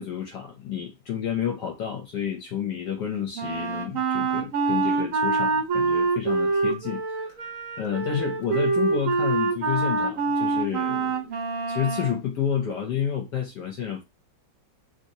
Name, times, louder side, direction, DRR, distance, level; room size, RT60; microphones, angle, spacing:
voice 1, 0.0-11.3 11.7-14.0, left 8 dB, 65° left, 1.2 m, -30 dB
Wind instrument woodwind instrument, 3.3-12.2, right 4 dB, 60° right, 0.9 m, -25 dB
3.2 x 2.8 x 2.7 m
omnidirectional pair, 2.1 m